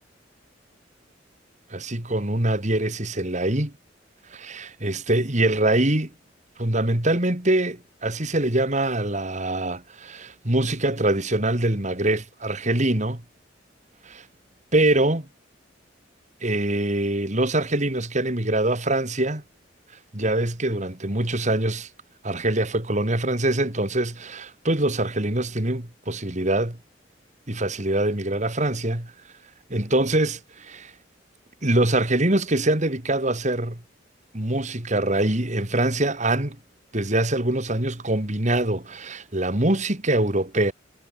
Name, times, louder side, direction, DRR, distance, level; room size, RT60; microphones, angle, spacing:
voice 1, 1.7-3.7 4.3-6.1 6.6-13.2 14.0-14.2 14.7-15.3 16.4-19.4 20.1-21.9 22.2-26.8 27.5-29.1 29.7-30.9 31.6-33.8 34.3-36.6 36.9-40.7, right 1 dB, 40° right, 2.7 m, -24 dB
head